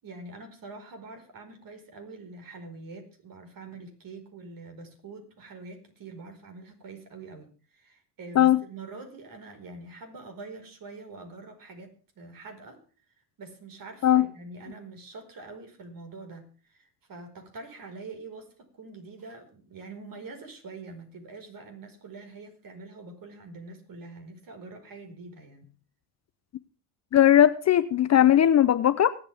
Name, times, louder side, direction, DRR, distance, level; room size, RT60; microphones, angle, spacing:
voice 1, 0.0-12.8 13.4-25.7, right 3 dB, 45° right, 5 dB, 5.1 m, -45 dB
voice 2, 27.1-29.1, left 11 dB, 35° left, 14 dB, 0.7 m, -19 dB
24.5 x 8.8 x 3.6 m, 0.39 s
supercardioid pair, 90°, 48 cm